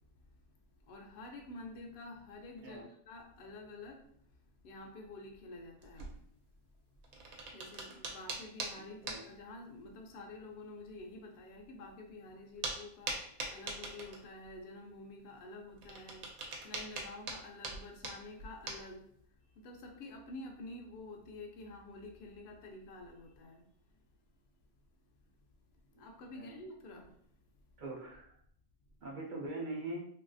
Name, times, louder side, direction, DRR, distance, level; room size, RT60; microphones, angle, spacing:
voice 1, 0.9-4.0 4.6-6.2 7.5-13.2 13.5-16.3 16.6-19.1 19.6-23.6 26.0-27.1, left 2 dB, 65° left, 1 dB, 0.6 m, -49 dB
sound 1, 5.8-6.3 7.0-8.7 9.1-9.2 9.8-9.9 11.6-11.7 12.6-12.8 13.1-14.6 15.7-18.9, right 3 dB, 85° right, 1.1 m, -41 dB
voice 2, 27.8-28.3 29.0-30.0, right 2 dB, 60° right, -1 dB, 0.5 m, -42 dB
3.0 x 2.7 x 2.5 m, 0.66 s
omnidirectional pair, 1.5 m